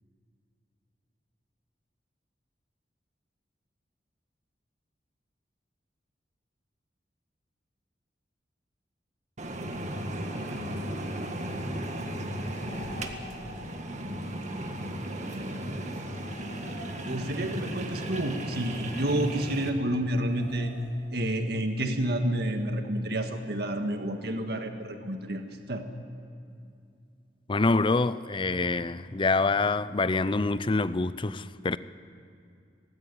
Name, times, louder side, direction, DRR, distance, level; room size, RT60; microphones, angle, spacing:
sound 1, 9.4-19.7, right 1 dB, 45° right, 1.8 m, -35 dB
sound 2, 9.6-19.9, equal, 85° right, 5.1 m, -48 dB
sound 3, 12.5-13.9 16.1-17.6 20.2-21.4, left 2 dB, 45° left, 2.0 m, -48 dB
voice 1, 17.1-20.7 21.1-25.9, right 1 dB, 65° right, 5 dB, 1.7 m, -29 dB
voice 2, 27.5-31.8, left 3 dB, 30° left, 15 dB, 0.6 m, -26 dB
18.5 x 16.5 x 9.8 m, 2.4 s
head